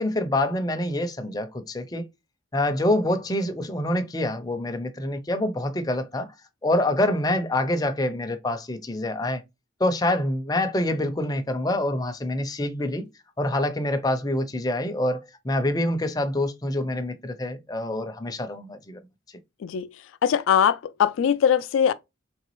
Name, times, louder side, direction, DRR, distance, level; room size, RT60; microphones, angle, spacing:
voice 1, 0.0-2.1 2.5-6.3 6.6-9.4 9.8-13.1 13.4-19.0, left 1 dB, 20° left, 0.5 m, -26 dB
voice 2, 20.2-21.9, left 8 dB, 80° left, 0.3 m, -21 dB
3.9 x 3.3 x 3.0 m
head